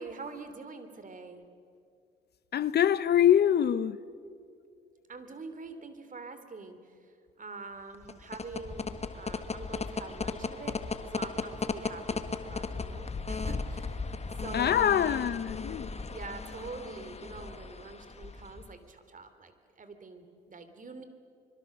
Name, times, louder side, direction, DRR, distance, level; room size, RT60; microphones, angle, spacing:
voice 1, 0.0-1.4 5.1-10.8 11.1-15.4 16.1-21.0, right 4 dB, 45° right, 3.0 m, -45 dB
voice 2, 2.5-4.0 14.5-15.9, left 10 dB, 60° left, 0.8 m, -24 dB
sound 1, 7.9-18.7, left 4 dB, 35° left, 1.5 m, -36 dB
25.5 x 22.0 x 6.6 m
supercardioid pair, 60°, 19 cm